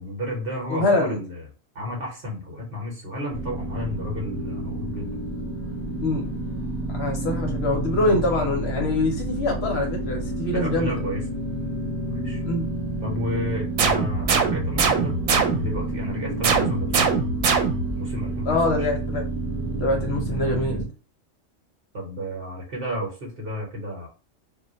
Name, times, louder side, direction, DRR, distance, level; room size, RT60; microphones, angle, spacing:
voice 1, 0.0-1.4 1.7-5.2 10.5-11.2 12.1-12.4 13.0-17.1 17.9-18.9 20.3-20.8 21.9-24.1, left 1 dB, 50° right, -1 dB, 1.1 m, -32 dB
voice 2, 0.7-1.2 6.0-6.3 6.9-11.0 12.4-12.7 18.5-19.3 19.8-20.8, left 2 dB, 60° left, 2 dB, 0.8 m, -24 dB
sound 1, 3.3-20.8, right 2 dB, 25° left, 0.7 m, -30 dB
sound 2, 13.8-15.8 16.4-18.0, right 5 dB, 85° right, 1.0 m, -22 dB
2.3 x 2.1 x 3.8 m, 0.35 s
omnidirectional pair, 1.4 m